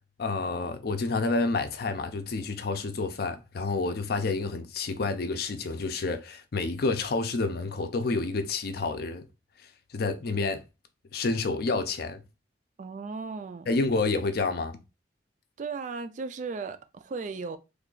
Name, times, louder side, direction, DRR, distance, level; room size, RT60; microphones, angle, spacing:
voice 1, 0.2-9.2 9.9-10.6 11.1-12.2 13.7-14.8, left 3 dB, 60° left, 0.5 m, -29 dB
voice 2, 12.8-13.8 15.6-17.6, right 4 dB, 45° right, 0.3 m, -36 dB
3.2 x 2.4 x 3.7 m
head